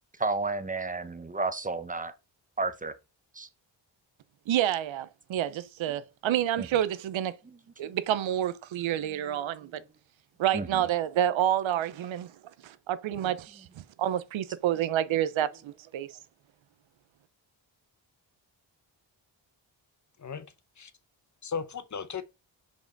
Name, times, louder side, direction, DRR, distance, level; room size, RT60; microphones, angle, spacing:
voice 1, 0.2-2.1 2.6-2.9 3.3-3.5 6.6-6.7 7.8-7.9 9.7-9.8 10.5-10.8, right 3 dB, 20° right, 1.0 m, -32 dB
voice 2, 4.5-7.4 7.8-9.8 10.4-12.3 12.6-16.1, right 11 dB, 90° right, 0.7 m, -29 dB
voice 3, 20.2-20.9 21.4-22.2, left 6 dB, 40° left, 0.9 m, -36 dB
5.6 x 5.1 x 3.9 m
cardioid pair, 85°, 45 cm